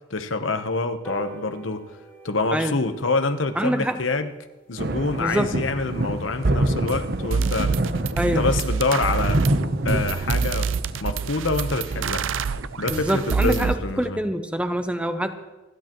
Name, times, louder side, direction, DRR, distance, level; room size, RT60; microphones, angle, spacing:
voice 1, 0.1-1.9 2.2-4.3 4.7-7.7 8.2-9.4 9.8-10.7 11.0-12.3 12.8-14.2, left 3 dB, 90° left, 8 dB, 1.0 m, -26 dB
sound 1, 1.0-7.8 8.2-8.3 8.6-8.7 9.0-9.1 9.4-9.5 9.8-10.1 10.5-10.6, right 3 dB, 10° left, 2.3 m, -46 dB
voice 2, 3.6-4.0 5.2-5.6 8.2-8.5 12.9-15.4, right 1 dB, 5° right, 8 dB, 0.8 m, -25 dB
sound 2, 4.8-14.0, right 1 dB, 55° right, 0.9 m, -27 dB
sound 3, 6.9-7.0 7.3-13.7, right 5 dB, 85° right, 0.5 m, -26 dB
28.0 x 11.5 x 3.1 m, 1.1 s
head